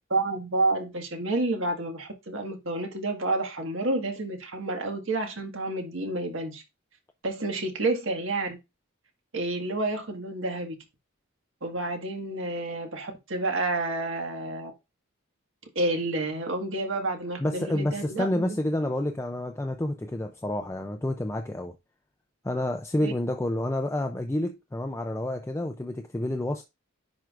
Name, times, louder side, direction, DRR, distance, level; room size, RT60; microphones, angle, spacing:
voice 1, 0.1-6.6 7.2-8.6 9.3-10.8 11.6-14.7 15.8-18.6 23.0-23.1, right 2 dB, 65° right, 1.6 m, -29 dB
voice 2, 17.4-21.7 22.4-26.6, left 1 dB, 10° left, 0.4 m, -29 dB
10.5 x 4.6 x 2.5 m
head